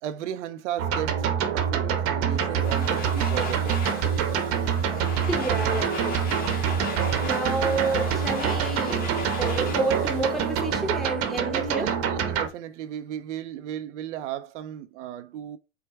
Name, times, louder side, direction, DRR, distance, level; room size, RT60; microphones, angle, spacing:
voice 1, 0.0-3.8 11.0-11.1 11.5-15.6, right 11 dB, 80° right, 0.6 m, -35 dB
sound 1, 0.8-12.5, right 7 dB, 40° right, 0.8 m, -26 dB
Domestic sounds home sounds, 2.3-11.2, left 4 dB, 25° left, 1.2 m, -37 dB
voice 2, 5.3-6.2 6.5-6.7 7.2-11.9, right 2 dB, ahead, 0.8 m, -30 dB
4.6 x 2.2 x 4.5 m
supercardioid pair, 125°, 35 cm